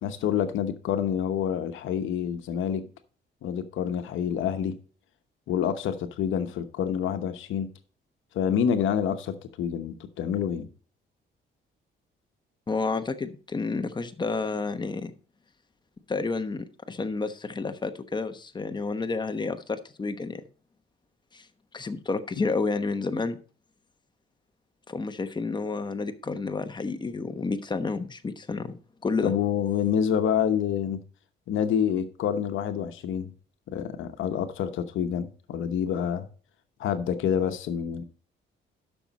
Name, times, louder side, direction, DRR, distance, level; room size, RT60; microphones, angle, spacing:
voice 1, 0.0-2.9 3.4-4.7 5.5-7.7 8.3-10.7 29.2-31.0 31.5-33.3 33.7-36.3 36.8-38.0, left 8 dB, 80° left, 1.0 m, -27 dB
voice 2, 12.7-15.1 16.1-20.4 21.3-21.5 21.7-23.4 24.9-29.3, left 4 dB, 20° left, 1.0 m, -30 dB
11.5 x 6.2 x 4.1 m
cardioid pair, 90°, 20 cm